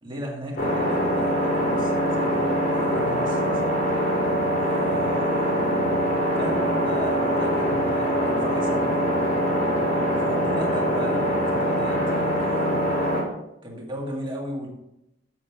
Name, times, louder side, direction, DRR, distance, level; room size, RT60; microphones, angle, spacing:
voice 1, 0.0-3.9 4.6-5.7 6.3-9.0 10.2-12.7 13.6-14.7, equal, 25° right, -2 dB, 2.0 m, -36 dB
sound 1, 0.6-13.2, equal, 50° left, 3.2 m, -23 dB
7.5 x 6.4 x 4.8 m, 0.83 s
head